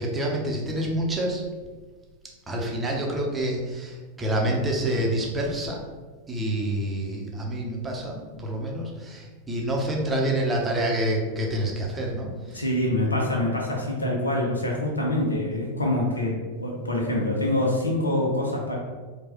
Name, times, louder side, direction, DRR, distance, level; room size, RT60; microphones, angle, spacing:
voice 1, 0.0-1.4 2.5-5.8 6.3-12.6, right 1 dB, 15° right, -1 dB, 0.7 m, -27 dB
voice 2, 12.5-18.8, left 1 dB, 80° left, -1 dB, 0.7 m, -25 dB
4.6 x 2.3 x 2.9 m, 1.4 s
figure-of-eight pair, 90°, 0 cm